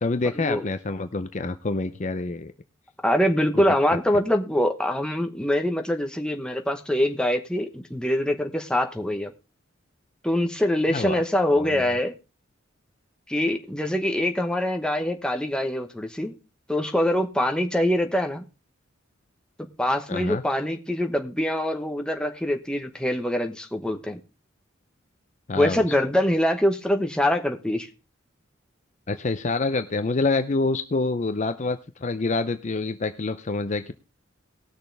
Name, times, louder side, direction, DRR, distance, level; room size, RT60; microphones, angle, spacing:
voice 1, 0.0-2.5 3.5-3.6 10.9-11.2 11.5-11.8 20.1-20.4 25.5-25.8 29.1-33.9, left 3 dB, 35° left, 10 dB, 0.6 m, -27 dB
voice 2, 3.0-9.3 10.2-12.1 13.3-16.3 16.7-18.4 19.8-24.2 25.6-27.9, left 1 dB, 5° left, 4 dB, 1.0 m, -24 dB
19.5 x 6.6 x 3.3 m, 0.30 s
head